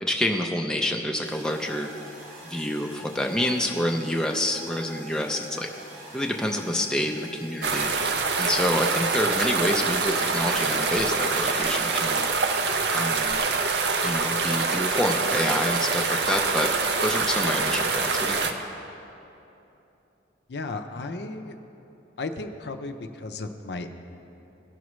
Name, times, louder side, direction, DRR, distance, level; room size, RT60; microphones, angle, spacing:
voice 1, 0.0-1.9 2.4-5.7 6.1-7.9 8.4-12.3 12.9-13.4 14.0-16.7 17.0-18.5, left 1 dB, 5° left, 1 dB, 0.4 m, -27 dB
sound 1, 1.2-13.0, right 1 dB, 85° right, 1.7 m, -45 dB
sound 2, 7.6-18.5, right 4 dB, 65° right, 0.6 m, -25 dB
voice 2, 20.5-21.5 22.2-23.9, left 3 dB, 65° left, 7 dB, 0.5 m, -34 dB
16.5 x 6.1 x 3.1 m, 2.9 s
head